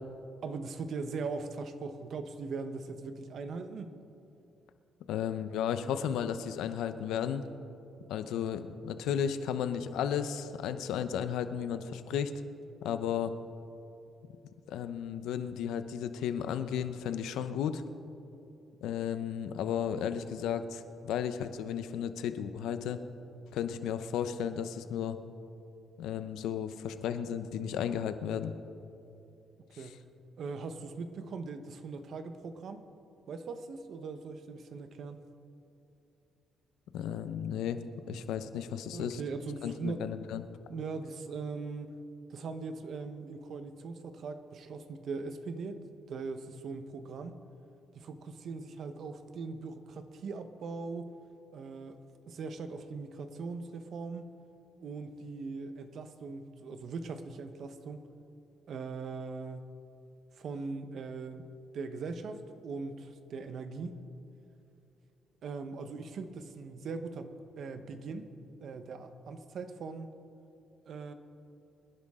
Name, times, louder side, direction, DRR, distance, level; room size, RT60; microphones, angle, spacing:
voice 1, 0.4-3.9 29.8-30.0 30.4-32.8 33.3-35.2 38.9-40.0 40.7-41.9 42.3-45.8 46.1-47.4 47.9-51.1 51.5-52.0 52.3-54.3 54.8-58.0 58.7-59.7 60.3-61.5 61.7-64.0 65.4-68.3 68.6-70.1 70.9-71.1, right 4 dB, 65° right, 9 dB, 1.1 m, -40 dB
voice 2, 5.1-7.4 8.1-12.3 12.8-13.3 14.7-17.8 18.8-23.0 23.5-25.2 26.0-28.5 29.8-29.9 36.9-37.8 38.1-39.2 39.6-40.4, left 8 dB, 85° left, 10 dB, 0.8 m, -34 dB
25.0 x 10.5 x 3.8 m, 2.7 s
cardioid pair, 90°, 0 cm